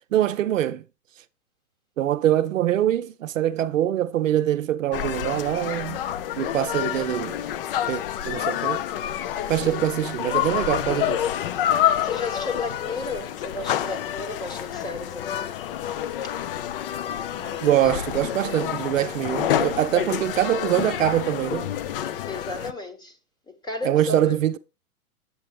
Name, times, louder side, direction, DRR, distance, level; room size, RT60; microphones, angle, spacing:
voice 1, 0.1-0.8 2.0-6.0 6.4-7.3 7.9-8.8 9.5-11.2 17.6-21.7 23.8-24.6, right 12 dB, 65° right, 0.7 m, -24 dB
sound 1, 4.9-22.7, left 11 dB, 40° left, 0.5 m, -28 dB
voice 2, 9.4-9.8 12.0-15.6 16.2-16.3 17.0-17.9 22.1-23.2 23.5-24.4, left 2 dB, 10° left, 1.1 m, -35 dB
7.9 x 7.3 x 3.3 m
hypercardioid pair, 125°, 43 cm